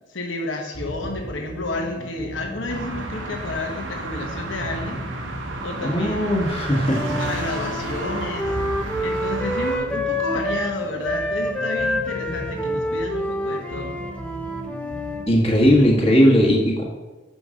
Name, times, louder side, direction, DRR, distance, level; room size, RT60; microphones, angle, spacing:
voice 1, 0.1-5.0 5.6-6.5 7.2-8.5 9.0-14.0, left 2 dB, 75° left, 2 dB, 1.1 m, -31 dB
sound 1, 0.7-16.1, equal, 55° left, 1.5 m, -37 dB
sound 2, 2.7-9.8, right 2 dB, 70° right, 0.9 m, -32 dB
voice 2, 5.8-7.2 15.3-16.8, equal, 30° left, -2 dB, 1.4 m, -18 dB
Wind instrument woodwind instrument, 6.8-10.7 11.0-15.3, left 1 dB, 5° left, 0.7 m, -28 dB
5.4 x 5.1 x 6.2 m, 1.2 s
head